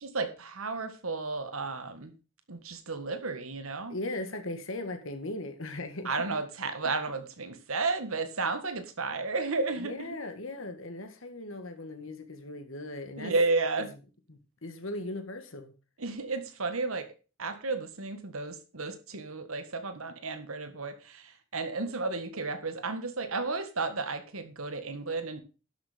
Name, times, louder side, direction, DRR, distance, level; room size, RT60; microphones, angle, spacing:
voice 1, 0.0-2.1 2.5-3.9 6.0-10.1 13.2-13.9 16.0-17.1 17.4-25.4, right 3 dB, 80° right, 1.7 m, -33 dB
voice 2, 3.9-6.2 9.8-13.3 14.3-15.7, left 2 dB, 70° left, 1.8 m, -38 dB
11.5 x 6.5 x 5.1 m
head